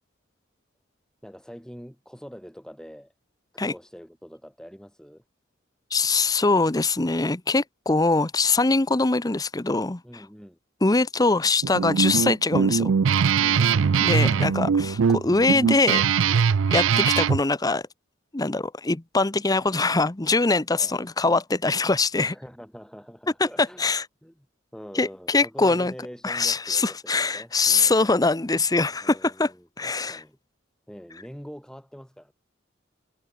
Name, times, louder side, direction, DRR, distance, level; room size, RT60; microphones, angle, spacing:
voice 1, 1.2-3.1 3.5-5.2 10.0-10.6 13.4-14.3 20.7-21.0 22.2-23.9 24.2-24.5 24.7-28.0 29.0-30.4 30.9-32.3, equal, 5° left, 7.2 m, -44 dB
voice 2, 5.9-10.0 10.8-12.9 14.0-16.0 16.7-17.8 18.3-22.3 23.8-24.0 24.9-25.9 26.2-29.5 29.8-30.2, left 3 dB, 20° left, 0.7 m, -23 dB
Guitar, 11.6-17.4, right 6 dB, 80° right, 0.5 m, -21 dB
head